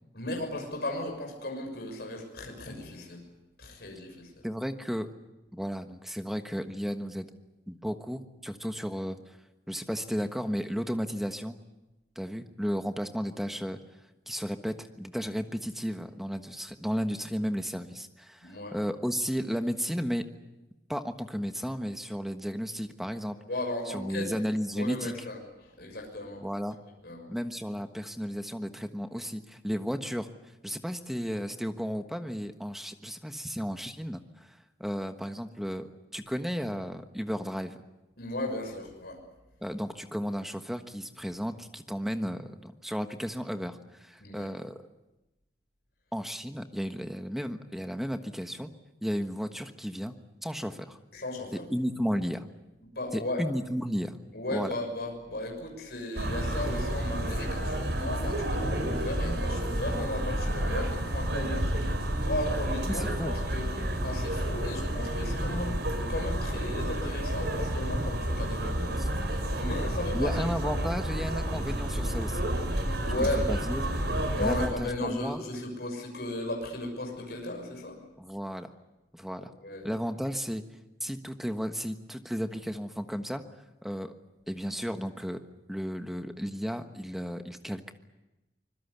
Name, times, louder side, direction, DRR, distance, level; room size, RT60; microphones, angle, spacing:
voice 1, 0.1-3.2 3.6-4.5 18.4-18.8 23.5-24.3 24.8-26.4 27.0-27.3 38.2-39.2 44.2-44.5 51.1-51.6 52.9-53.4 54.3-70.4 73.0-73.5 74.3-78.0 79.6-79.9, left 1 dB, 65° left, 2 dB, 6.5 m, -36 dB
voice 2, 4.4-5.1 5.5-7.3 7.7-9.4 9.7-11.6 12.1-13.8 14.3-20.3 20.9-23.4 23.9-25.1 26.4-26.8 27.3-30.3 30.6-35.9 36.1-37.8 39.6-44.7 46.1-48.7 49.0-50.1 50.4-51.0 51.5-52.5 53.1-54.2 54.5-54.7 62.9-63.3 69.0-69.1 70.1-72.4 73.5-73.8 74.4-75.4 78.2-78.7 79.1-79.5 79.8-80.7 81.0-83.4 83.8-84.1 84.5-87.9, equal, ahead, 7 dB, 1.3 m, -33 dB
sound 1, 56.2-74.7, right 1 dB, 75° right, 5.3 m, -30 dB
25.5 x 21.5 x 8.2 m, 0.99 s
head